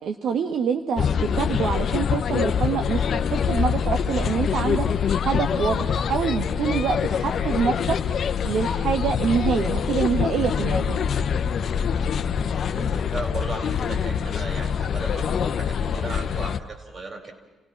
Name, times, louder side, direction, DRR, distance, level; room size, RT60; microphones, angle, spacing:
voice 1, 0.0-1.0 1.3-11.0, right 6 dB, 70° right, 5 dB, 1.3 m, -26 dB
sound 1, 1.0-16.6, left 7 dB, 60° left, 0.9 m, -25 dB
voice 2, 12.7-17.3, right 3 dB, 40° right, 5 dB, 5.0 m, -36 dB
30.0 x 17.5 x 6.0 m, 1.1 s
cardioid pair, 90°, 0 cm